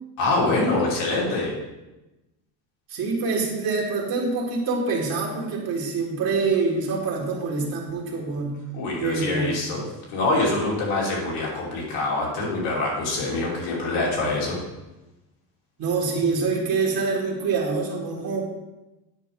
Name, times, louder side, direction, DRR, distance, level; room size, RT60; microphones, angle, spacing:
voice 1, 0.2-1.5 8.7-9.8 10.1-14.6, left 2 dB, 75° left, -3 dB, 2.8 m, -25 dB
voice 2, 2.9-8.6 9.0-9.6 15.8-18.4, right 4 dB, 55° right, -2 dB, 1.8 m, -25 dB
9.1 x 5.4 x 3.7 m, 1.0 s
cardioid pair, 120°, 43 cm